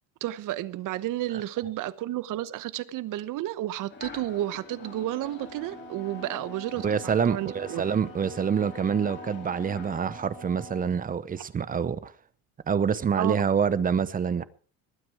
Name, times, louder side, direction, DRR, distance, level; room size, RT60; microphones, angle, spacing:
voice 1, 0.2-7.8 13.2-13.4, right 14 dB, 60° right, 1.1 m, -32 dB
sound 1, 3.9-10.1, left 5 dB, 30° left, 2.9 m, -47 dB
Wind instrument woodwind instrument, 4.7-11.0, equal, 70° left, 5.2 m, -46 dB
voice 2, 6.8-12.1 12.7-14.4, right 7 dB, 25° right, 0.8 m, -26 dB
20.5 x 9.4 x 4.8 m
cardioid pair, 150°, 36 cm